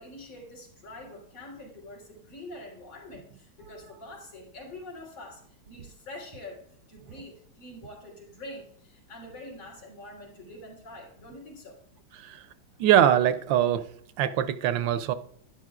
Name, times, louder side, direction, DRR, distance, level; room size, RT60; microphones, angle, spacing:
voice 1, 0.0-6.6 6.9-11.8, left 1 dB, 80° left, -2 dB, 4.1 m, -45 dB
voice 2, 12.8-13.9 14.2-15.1, right 10 dB, 75° right, 12 dB, 1.2 m, -22 dB
12.0 x 10.0 x 2.4 m, 0.65 s
omnidirectional pair, 2.2 m